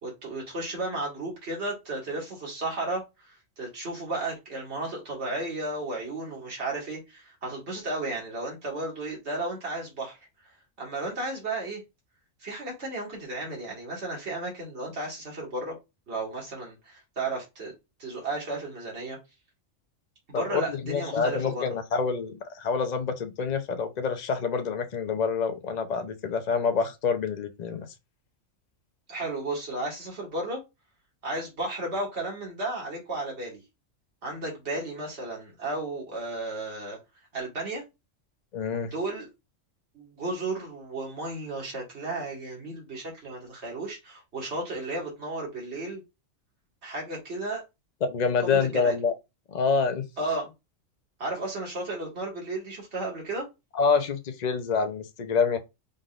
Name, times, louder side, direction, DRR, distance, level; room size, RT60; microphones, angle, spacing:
voice 1, 0.0-10.2 10.8-11.8 12.4-15.7 16.1-17.7 18.0-19.2 20.3-21.8 29.1-30.6 31.2-33.6 34.2-37.0 37.3-37.8 38.8-39.3 39.9-46.0 46.8-47.6 48.4-48.9 50.2-50.5 51.2-53.5, right 2 dB, 55° right, 2.3 m, -34 dB
voice 2, 20.3-27.9 38.5-38.9 48.0-49.1 49.5-50.1 53.7-55.6, left 5 dB, 40° left, 0.7 m, -27 dB
5.1 x 3.8 x 2.5 m
omnidirectional pair, 1.3 m